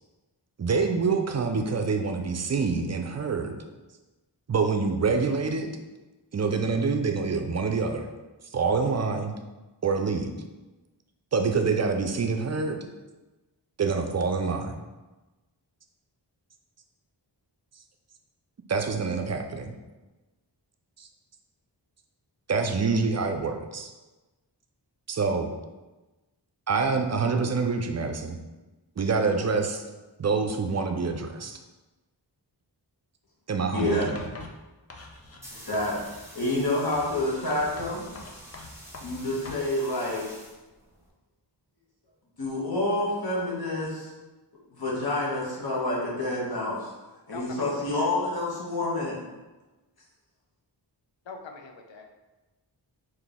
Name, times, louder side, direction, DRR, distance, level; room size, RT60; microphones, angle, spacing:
voice 1, 0.6-3.6 4.5-5.7 6.3-8.1 8.5-9.4 9.8-10.3 11.3-12.9 13.8-14.8 18.7-19.7 21.0-21.1 22.5-23.9 25.1-25.5 26.7-28.4 29.0-29.8 30.2-31.6 33.5-34.2, right 4 dB, 40° right, 4 dB, 0.4 m, -26 dB
voice 2, 33.7-34.0 35.7-35.9 36.3-38.1 39.0-40.2 42.4-44.1 44.7-46.9 47.3-49.2, left 2 dB, 55° left, -5 dB, 1.2 m, -28 dB
Writing, 33.8-35.5 35.7-36.3 36.9-39.7, left 2 dB, 35° left, 0.5 m, -44 dB
sound 1, 35.1-41.1, equal, 5° right, 1.3 m, -48 dB
voice 3, 47.3-48.1 51.3-52.1, left 4 dB, 90° left, 3 dB, 0.6 m, -43 dB
3.9 x 2.7 x 3.5 m, 1.1 s
wide cardioid pair, 80°, 44 cm